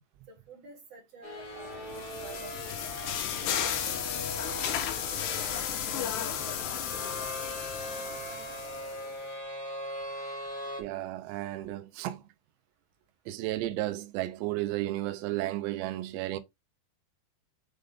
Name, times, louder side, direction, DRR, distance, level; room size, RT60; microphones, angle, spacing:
voice 1, 0.3-4.0 4.4-5.3 5.7-6.6 6.9-7.3, right 2 dB, 50° right, 2.0 m, -50 dB
sound 1, 1.2-10.8, equal, 35° left, 1.8 m, -40 dB
sound 2, 1.6-9.1, left 9 dB, 75° left, 3.1 m, -34 dB
voice 2, 10.8-12.3 13.3-16.4, right 16 dB, 85° right, 2.9 m, -33 dB
7.6 x 3.9 x 3.5 m
omnidirectional pair, 5.0 m